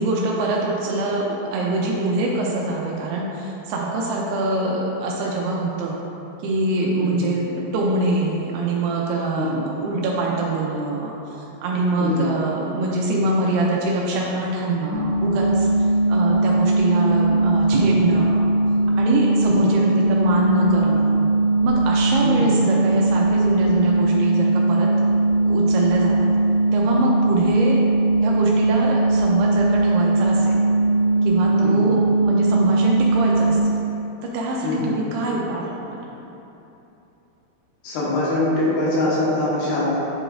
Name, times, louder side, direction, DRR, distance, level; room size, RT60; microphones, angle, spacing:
voice 1, 0.0-6.0 6.4-18.5 19.0-21.3 21.6-24.9 25.4-26.3 26.7-27.8 28.2-30.7 31.2-33.6 34.2-36.0, right 2 dB, 85° right, -3 dB, 2.6 m, -24 dB
voice 2, 7.0-7.3 9.3-9.6 12.0-12.3 19.6-19.7 22.2-22.5 31.6-31.8 34.6-34.9 37.8-40.0, left 2 dB, 80° left, -8 dB, 3.5 m, -23 dB
sound 1, 14.9-33.6, right 2 dB, 65° left, 1.9 m, -19 dB
9.7 x 4.9 x 2.5 m, 3.0 s
omnidirectional pair, 4.7 m